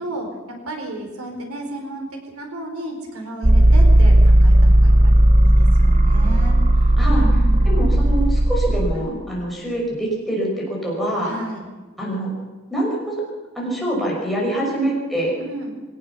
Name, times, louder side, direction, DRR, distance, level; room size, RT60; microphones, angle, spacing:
voice 1, 0.0-7.8 8.9-9.2 11.2-11.7 14.7-14.9 15.4-15.7, right 1 dB, 85° right, 3 dB, 4.6 m, -33 dB
sound 1, 3.4-8.9, right 1 dB, 30° right, 1.0 m, -14 dB
voice 2, 7.7-11.3 12.0-12.3 12.7-13.2 13.5-15.3, right 1 dB, ahead, -4 dB, 6.0 m, -24 dB
22.0 x 18.0 x 7.1 m, 1.3 s
head